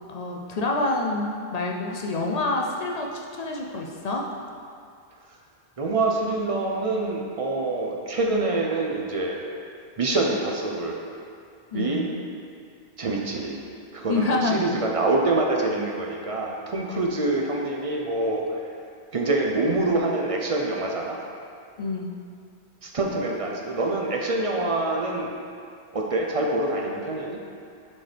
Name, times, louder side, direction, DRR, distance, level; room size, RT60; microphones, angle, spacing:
voice 1, 0.1-4.3 11.7-12.1 14.1-14.6 21.8-22.1, left 3 dB, 50° left, -1 dB, 0.5 m, -27 dB
voice 2, 5.8-9.4 10.0-11.0 11.7-12.0 13.0-13.6 13.9-18.6 19.1-21.2 22.8-25.3 25.9-27.4, right 2 dB, 45° right, -1 dB, 0.5 m, -25 dB
7.4 x 4.4 x 3.3 m, 2.4 s
omnidirectional pair, 1.1 m